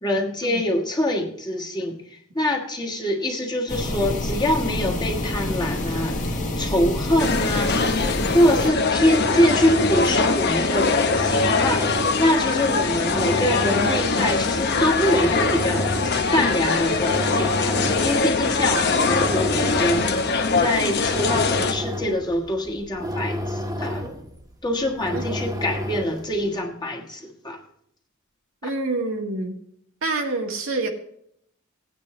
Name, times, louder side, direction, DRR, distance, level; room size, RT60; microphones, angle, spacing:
voice 1, 0.0-6.2 6.6-20.2 20.6-24.0 24.6-27.6, left 1 dB, 20° left, 0 dB, 1.5 m, -24 dB
sound 1, 3.7-8.7, left 1 dB, 40° left, 1.5 m, -27 dB
sound 2, 7.2-21.7, left 4 dB, 55° left, 1.0 m, -22 dB
sound 3, 8.8-26.4, equal, 20° right, 1.3 m, -32 dB
voice 2, 28.6-29.6 30.0-30.9, right 2 dB, 80° right, 1 dB, 1.7 m, -27 dB
17.0 x 9.3 x 3.2 m, 0.70 s
head